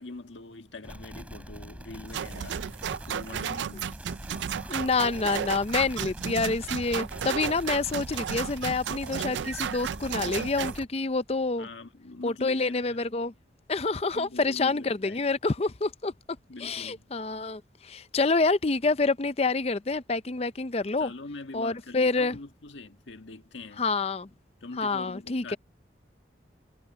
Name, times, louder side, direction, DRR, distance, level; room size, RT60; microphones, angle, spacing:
voice 1, 0.0-4.0 11.6-13.1 14.1-15.3 16.5-17.1 21.0-23.9 24.6-25.6, left 2 dB, 80° left, 1.6 m, -43 dB
sound 1, 0.8-10.9, equal, 5° right, 7.1 m, -43 dB
sound 2, 2.1-10.8, right 8 dB, 75° right, 0.4 m, -33 dB
voice 2, 4.7-11.7 12.2-13.3 13.7-16.1 16.6-21.1 21.5-22.4 23.8-24.3 24.8-25.6, left 3 dB, 35° left, 0.5 m, -27 dB
head